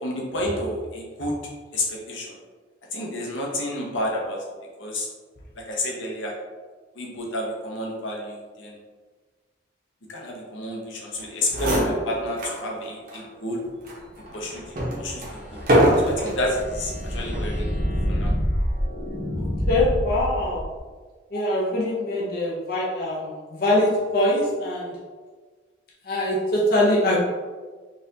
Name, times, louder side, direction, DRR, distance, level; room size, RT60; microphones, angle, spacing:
voice 1, 0.0-1.3 1.7-2.4 2.9-4.4 4.8-5.1 5.6-6.3 7.0-8.7 10.1-13.6 14.3-14.6 15.0-15.6 16.0-17.6 18.1-18.3 21.3-21.4, left 1 dB, 90° left, -2 dB, 0.8 m, -30 dB
sound 1, 11.2-11.3 11.5-12.6 13.1-13.2 13.8-16.4 17.2-17.6, equal, 45° right, 0.8 m, -23 dB
sound 2, 14.4-20.8, equal, 10° left, 0.7 m, -28 dB
voice 2, 19.4-20.6 21.3-25.0 26.0-27.2, left 1 dB, 50° left, -5 dB, 0.6 m, -23 dB
4.0 x 2.5 x 2.7 m, 1.4 s
head